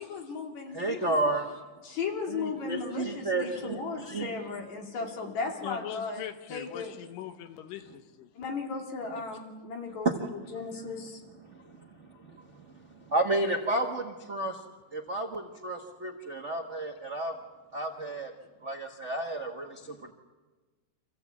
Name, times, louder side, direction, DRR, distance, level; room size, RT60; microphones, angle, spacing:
voice 1, 0.0-1.2 1.8-6.2 6.5-6.9 8.4-11.2 16.1-16.2, left 4 dB, 60° left, 1 dB, 4.0 m, -36 dB
voice 2, 0.7-1.5 2.3-4.3 10.0-10.1 13.1-14.5 14.9-17.3 17.7-18.3 18.6-19.8, right 2 dB, 75° right, 3 dB, 0.6 m, -31 dB
voice 3, 5.6-8.3, left 11 dB, 90° left, 9 dB, 2.8 m, -41 dB
27.5 x 15.5 x 8.4 m, 1.3 s
omnidirectional pair, 3.8 m